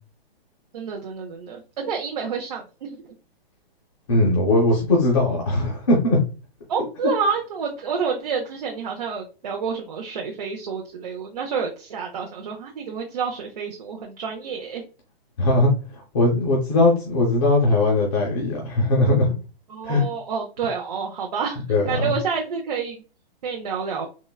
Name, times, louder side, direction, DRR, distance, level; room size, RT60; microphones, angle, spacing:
voice 1, 0.7-3.0 6.7-14.8 19.7-23.0 23.4-24.1, right 5 dB, 45° right, 0 dB, 0.5 m, -29 dB
voice 2, 4.1-6.2 15.4-19.3 19.8-20.1 21.7-22.1, left 2 dB, 30° left, -3 dB, 0.6 m, -20 dB
3.7 x 2.0 x 2.2 m, 0.34 s
hypercardioid pair, 165°, 30 cm